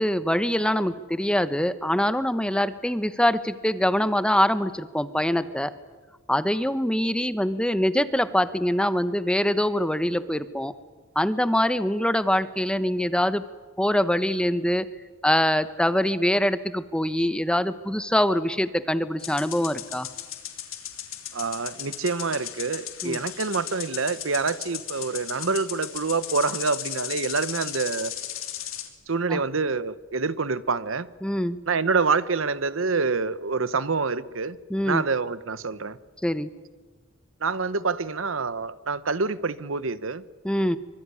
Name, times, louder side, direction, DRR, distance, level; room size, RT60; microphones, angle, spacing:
voice 1, 0.0-5.7 6.3-10.7 11.1-13.4 13.8-14.9 15.2-20.1 23.0-23.2 29.3-29.4 31.2-31.6 34.7-35.0 36.2-36.5 40.4-40.8, equal, 5° left, 13 dB, 1.0 m, -24 dB
sound 1, 19.2-28.9, left 11 dB, 80° left, 3.3 m, -36 dB
voice 2, 21.3-28.1 29.1-31.1 31.7-34.6 34.8-36.0 37.4-40.2, right 4 dB, 75° right, 16 dB, 1.0 m, -26 dB
25.0 x 25.0 x 9.7 m, 1.3 s
head